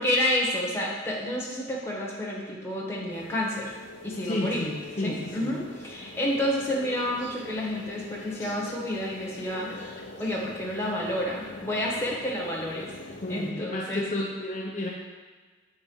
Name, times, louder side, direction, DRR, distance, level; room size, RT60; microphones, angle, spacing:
voice 1, 0.0-3.7 4.0-4.6 5.0-12.9 13.3-14.1, left 1 dB, 15° left, -3 dB, 1.3 m, -30 dB
sound 1, 3.1-13.5, left 2 dB, 75° left, 0.8 m, -44 dB
voice 2, 4.2-5.5 13.2-14.9, left 1 dB, 40° left, -4 dB, 0.8 m, -31 dB
7.4 x 4.0 x 5.4 m, 1.4 s
head